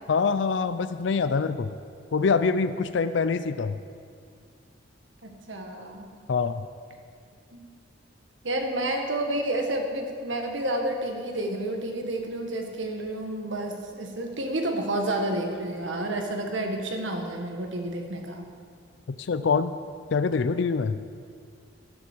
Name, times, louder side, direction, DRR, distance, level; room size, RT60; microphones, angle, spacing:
voice 1, 0.1-1.7 2.1-3.8 6.3-6.6 19.2-19.7 20.1-21.0, left 5 dB, 70° left, 12 dB, 0.4 m, -25 dB
voice 2, 5.2-6.0 7.5-7.7 8.4-18.4, right 1 dB, 90° right, 3 dB, 1.6 m, -30 dB
13.0 x 12.0 x 4.6 m, 2.3 s
head